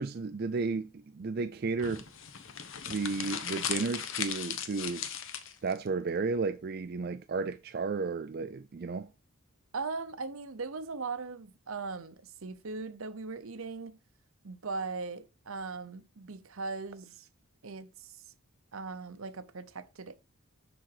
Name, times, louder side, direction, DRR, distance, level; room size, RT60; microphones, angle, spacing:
voice 1, 0.0-2.0 2.9-5.1 5.6-9.1, right 4 dB, 45° right, 0.4 m, -33 dB
sound 1, 1.8-5.8, left 8 dB, 65° left, 1.0 m, -37 dB
voice 2, 9.7-14.0 14.4-17.3 17.6-18.3 18.7-20.1, right 4 dB, 70° right, 0.8 m, -39 dB
11.5 x 4.0 x 4.8 m
head